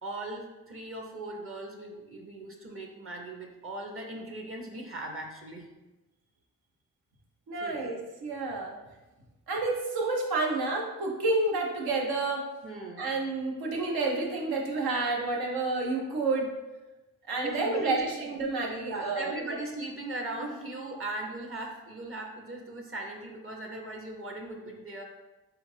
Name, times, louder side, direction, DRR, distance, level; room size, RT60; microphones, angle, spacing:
voice 1, 0.0-5.7 7.6-7.8 12.6-13.1 17.4-18.3 18.8-25.0, right 2 dB, 35° right, 1 dB, 0.6 m, -38 dB
voice 2, 7.5-8.8 9.5-12.4 13.0-16.5 17.3-19.4, right 3 dB, 85° right, -1 dB, 0.7 m, -29 dB
3.7 x 2.4 x 3.2 m, 1.1 s
supercardioid pair, 40°, 36 cm